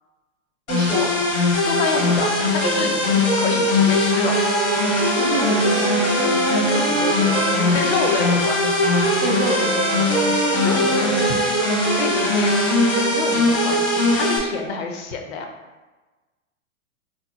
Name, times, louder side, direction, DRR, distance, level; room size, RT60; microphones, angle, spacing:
sound 1, 0.7-14.4, left 2 dB, 80° left, 1.1 m, -20 dB
voice 1, 0.7-1.2 1.8-2.2 2.8-2.9 5.2-6.2 7.5-7.7 9.2-10.3 11.7-11.9, right 2 dB, 10° right, -3 dB, 0.4 m, -29 dB
voice 2, 1.6-4.4 6.3-7.4 7.7-8.7 10.5-15.5, left 4 dB, 50° left, 3 dB, 0.6 m, -28 dB
sound 2, 4.1-13.3, right 3 dB, 55° right, 0.7 m, -27 dB
3.4 x 2.8 x 2.3 m, 1.2 s
hypercardioid pair, 115°, 41 cm